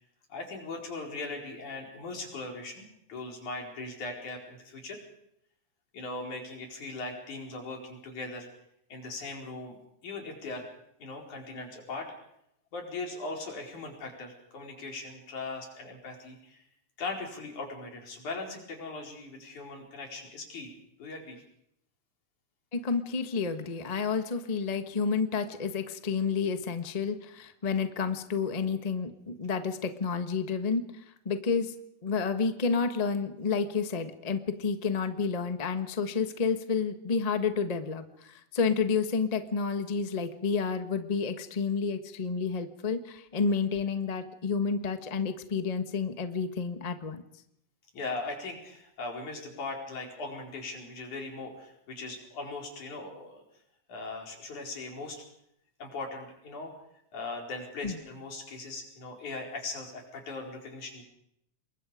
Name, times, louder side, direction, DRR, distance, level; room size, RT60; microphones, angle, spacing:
voice 1, 0.3-5.0 5.9-8.5 8.9-9.8 10.0-10.6 11.0-12.1 12.7-16.6 17.0-20.7 21.0-21.4 47.9-53.4 53.9-55.2 55.8-56.7 57.1-61.0, left 3 dB, 90° left, 1 dB, 6.0 m, -39 dB
voice 2, 22.7-30.8 31.2-31.7 32.0-47.2 57.8-58.0, left 5 dB, 30° left, 8 dB, 0.7 m, -30 dB
28.0 x 22.0 x 5.2 m, 0.75 s
omnidirectional pair, 3.3 m